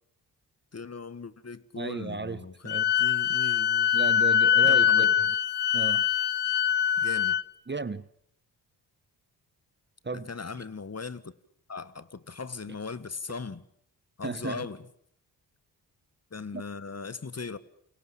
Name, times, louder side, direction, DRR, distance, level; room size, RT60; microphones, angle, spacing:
voice 1, 0.7-3.9 4.6-5.1 7.0-7.4 10.1-11.3 11.7-13.7 14.2-14.9 16.3-17.6, left 4 dB, 35° left, 1.7 m, -39 dB
voice 2, 1.8-2.9 3.9-5.1 5.7-6.0 7.7-8.1 10.0-10.3 14.2-14.7 16.5-16.6, right 3 dB, 25° right, 1.3 m, -34 dB
Wind instrument woodwind instrument, 2.7-7.4, left 9 dB, 65° left, 1.3 m, -23 dB
29.0 x 23.5 x 7.3 m
supercardioid pair, 50°, 45 cm